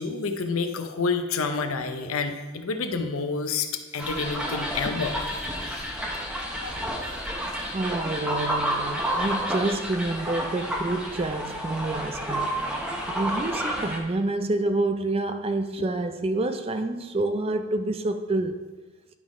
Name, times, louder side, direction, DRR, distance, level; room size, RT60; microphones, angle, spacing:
voice 1, 0.0-3.7 3.9-5.1 6.6-6.8, left 4 dB, 75° left, 0.7 m, -28 dB
sound 1, 4.0-14.0, equal, 5° right, 0.8 m, -30 dB
voice 2, 7.7-12.5 13.1-18.7, right 2 dB, 25° right, 0.4 m, -28 dB
11.0 x 3.8 x 4.9 m
head